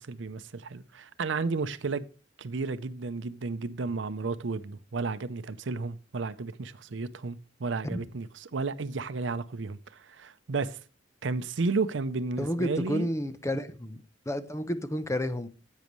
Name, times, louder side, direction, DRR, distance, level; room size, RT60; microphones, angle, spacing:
voice 1, 0.0-2.1 2.4-10.8 11.2-13.1, right 4 dB, 80° right, 0.6 m, -32 dB
voice 2, 12.4-15.5, equal, 15° left, 0.7 m, -31 dB
10.5 x 8.3 x 3.1 m
head